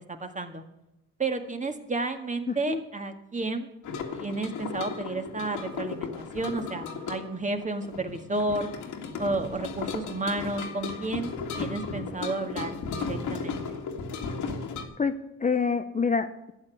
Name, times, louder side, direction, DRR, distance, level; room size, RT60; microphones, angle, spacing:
voice 1, 0.1-0.6 1.2-3.7 4.1-8.7 9.2-11.3 11.6-13.8, right 2 dB, 25° right, 6 dB, 1.8 m, -32 dB
voice 2, 2.5-2.8 15.0-16.5, left 5 dB, 25° left, 8 dB, 0.8 m, -27 dB
sound 1, 3.8-14.8, left 5 dB, 75° left, 2.1 m, -35 dB
13.0 x 8.4 x 8.4 m, 0.89 s
cardioid pair, 90°, 30 cm